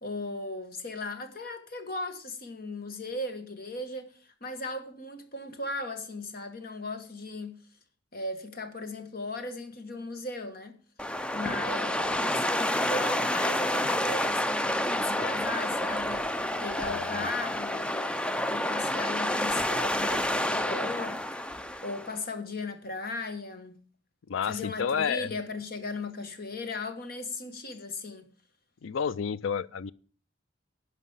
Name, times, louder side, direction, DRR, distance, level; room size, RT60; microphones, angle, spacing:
voice 1, 0.0-7.6 8.1-10.7 11.3-16.2 16.6-21.2 21.8-23.8 24.4-28.3, left 2 dB, 50° left, 1.5 m, -37 dB
sound 1, 11.0-22.2, left 1 dB, 5° left, 0.4 m, -29 dB
voice 2, 16.9-17.3 24.3-25.3 28.8-29.9, left 7 dB, 80° left, 0.4 m, -30 dB
11.0 x 5.1 x 8.0 m
head